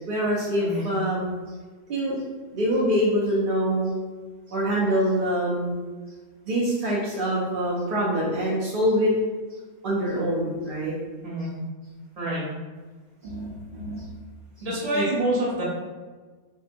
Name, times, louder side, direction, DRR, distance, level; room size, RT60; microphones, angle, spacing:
voice 1, 0.1-1.4 1.9-2.2 2.5-4.0 4.5-5.8 6.5-9.1 9.8-10.9 13.2-14.0 14.9-15.1, equal, 60° right, -6 dB, 0.5 m, -25 dB
voice 2, 12.2-12.5 14.6-15.6, right 1 dB, 35° right, -7 dB, 0.9 m, -27 dB
3.6 x 2.1 x 2.5 m, 1.4 s
omnidirectional pair, 1.3 m